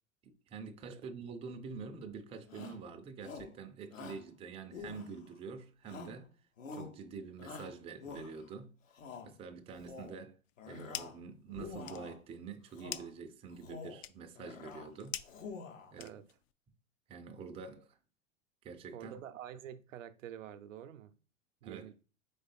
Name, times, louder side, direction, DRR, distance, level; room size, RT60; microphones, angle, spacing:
voice 1, 0.2-6.3 6.7-8.7 9.2-10.4 10.7-15.2 15.9-16.2 17.1-18.0 18.6-19.2 21.6-21.9, right 5 dB, 15° right, 0.4 m, -46 dB
Shout, 2.5-2.8 3.2-3.6 3.9-4.3 4.7-5.4 5.9-6.2 6.6-7.0 7.4-8.5 8.9-9.3 9.7-10.2 10.6-11.2 11.5-12.2 12.7-13.1 13.5-14.0 14.4-14.9 15.2-15.9, left 5 dB, 75° left, 1.0 m, -47 dB
sound 1, 10.4-11.3 11.6-16.5, left 12 dB, 55° left, 0.5 m, -47 dB
voice 2, 18.9-21.1 21.6-21.9, right 10 dB, 75° right, 0.6 m, -47 dB
3.9 x 3.2 x 4.1 m
hypercardioid pair, 95°, 39 cm